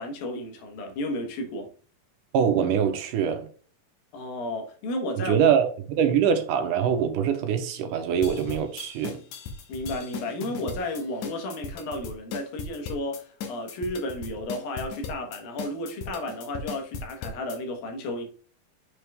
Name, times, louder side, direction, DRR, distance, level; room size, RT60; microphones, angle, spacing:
voice 1, 0.0-1.7 4.1-5.5 9.7-18.3, left 1 dB, 90° left, 3.3 m, -33 dB
voice 2, 2.3-3.5 5.2-5.7 6.0-9.2, right 8 dB, 75° right, 2.4 m, -23 dB
sound 1, 8.2-17.6, left 5 dB, 65° left, 2.2 m, -37 dB
6.9 x 4.9 x 3.5 m
omnidirectional pair, 4.0 m